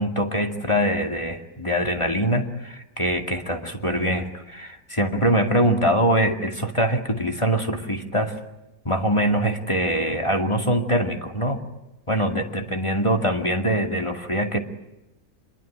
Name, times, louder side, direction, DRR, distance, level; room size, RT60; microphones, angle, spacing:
voice 1, 0.0-8.4 8.8-11.6 12.1-14.6, equal, 20° left, 4 dB, 2.3 m, -23 dB
27.0 x 22.5 x 10.0 m, 0.91 s
omnidirectional pair, 1.6 m